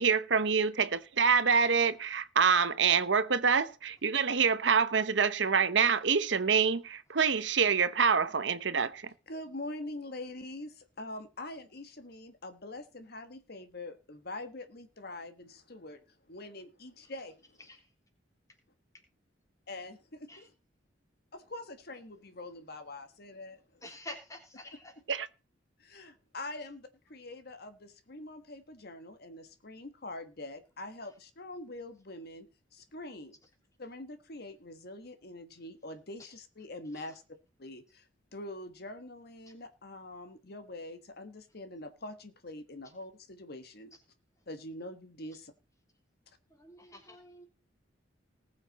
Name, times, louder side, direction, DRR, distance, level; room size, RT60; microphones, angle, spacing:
voice 1, 0.0-9.0 25.1-25.3, right 6 dB, 65° right, 0.8 m, -26 dB
voice 2, 9.3-17.6 19.7-20.5 21.3-23.9 25.8-32.5 32.7-33.4 33.8-37.2 37.6-43.9 44.5-45.5, left 2 dB, 55° left, 1.4 m, -44 dB
voice 3, 23.8-24.9 36.9-37.0 46.6-47.5, left 1 dB, 15° left, 3.3 m, -47 dB
19.5 x 6.7 x 4.1 m
head